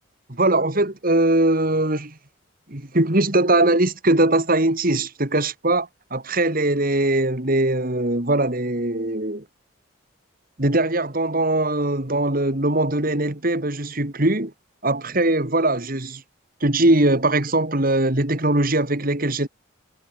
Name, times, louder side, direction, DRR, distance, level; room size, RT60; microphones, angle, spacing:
voice 1, 0.3-2.1 2.7-9.4 10.6-14.5 14.8-16.2 16.6-19.5, right 2 dB, 45° right, 2.5 m, -21 dB
head